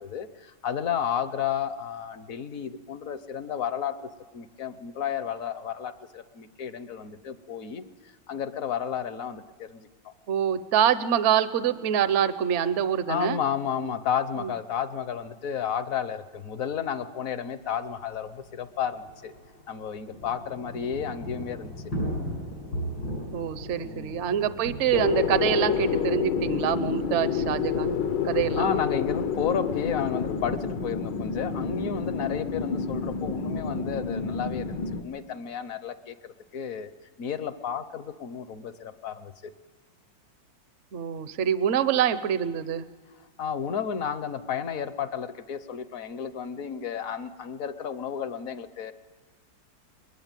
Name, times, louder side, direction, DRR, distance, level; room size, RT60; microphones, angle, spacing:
voice 1, 0.0-7.8 8.3-10.1 13.1-19.3 19.7-21.7 23.8-24.1 28.6-36.9 37.2-39.3 43.4-48.9, left 8 dB, 55° left, 12 dB, 1.2 m, -32 dB
voice 2, 10.3-13.4 14.4-14.5 23.3-28.0 28.2-28.7 40.9-42.8, right 9 dB, 50° right, 13 dB, 0.9 m, -25 dB
Thunder / Rain, 17.6-17.7 17.9-18.0 18.3-34.2, equal, 90° left, 7.6 m, -39 dB
sound 1, 24.9-35.0, left 6 dB, 70° left, 1.7 m, -29 dB
22.0 x 22.0 x 9.0 m, 1.4 s
omnidirectional pair, 2.0 m